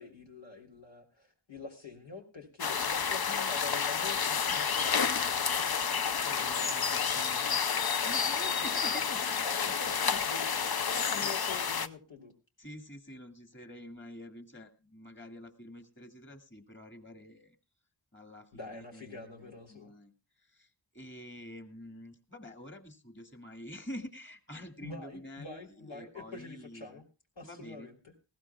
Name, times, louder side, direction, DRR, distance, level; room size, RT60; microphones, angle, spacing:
voice 1, 0.0-5.4 9.2-12.3 18.5-19.9 24.8-27.0 27.4-28.1, left 3 dB, 85° left, 1 dB, 3.4 m, -46 dB
sound 1, 2.6-11.9, left 6 dB, 55° left, 0.7 m, -30 dB
voice 2, 6.2-9.2 11.2-11.3 12.6-17.6 18.1-20.1 20.5-20.7 20.9-27.0 27.4-27.9, equal, 25° left, 6 dB, 2.2 m, -47 dB
19.5 x 15.5 x 2.3 m, 0.29 s
wide cardioid pair, 50°, 44 cm